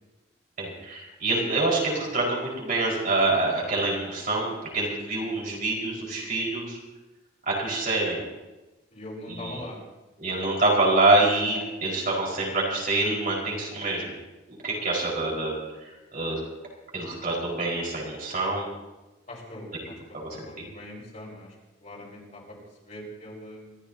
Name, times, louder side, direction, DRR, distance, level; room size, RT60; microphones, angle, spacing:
voice 1, 0.6-6.8 7.5-8.2 9.3-9.6 10.2-14.2 14.6-15.6 15.8-16.4 16.9-18.7 19.8-20.7, right 2 dB, 45° right, -3 dB, 4.8 m, -26 dB
voice 2, 8.9-9.8 19.3-21.5 21.8-22.4 22.9-23.8, left 1 dB, 40° left, -4 dB, 4.9 m, -41 dB
27.0 x 14.0 x 2.8 m, 1.1 s
head